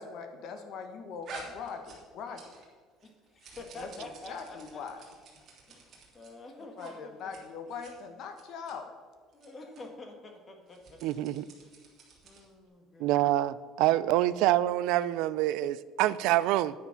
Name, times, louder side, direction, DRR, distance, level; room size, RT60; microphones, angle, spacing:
voice 1, 0.0-2.5 3.7-5.0 6.8-8.9, left 5 dB, 50° left, 1.4 m, -41 dB
sound 1, 1.2-2.7 3.0-6.3 6.7-6.9 7.2-7.4 7.7-7.9 8.3-8.7 9.3-9.5 9.7-9.8 10.6-12.5, right 3 dB, 35° right, 2.8 m, -50 dB
voice 2, 3.0-5.3 5.7-7.3 9.3-11.0 11.6-11.7 12.2-13.3, left 2 dB, 25° left, 1.6 m, -48 dB
voice 3, 11.0-11.4 13.0-16.7, right 14 dB, 70° right, 0.4 m, -26 dB
9.5 x 9.4 x 5.8 m
cardioid pair, 165°, 0 cm